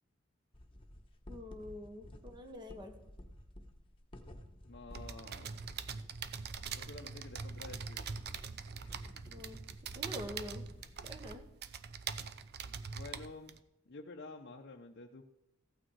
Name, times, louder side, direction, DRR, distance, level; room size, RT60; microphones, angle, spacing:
sound 1, 0.5-11.4, left 1 dB, 25° left, 1.1 m, -54 dB
voice 1, 1.3-2.9 9.3-9.6 9.9-10.6 11.0-11.4, left 1 dB, 20° right, 4 dB, 1.3 m, -46 dB
voice 2, 4.7-5.6 6.7-8.2 8.8-9.0 9.3-9.4 12.9-13.5 13.9-15.2, left 3 dB, 55° left, 0 dB, 0.8 m, -50 dB
sound 2, 4.9-13.6, right 6 dB, 50° right, 0.6 m, -43 dB
15.0 x 8.9 x 4.7 m, 0.88 s
head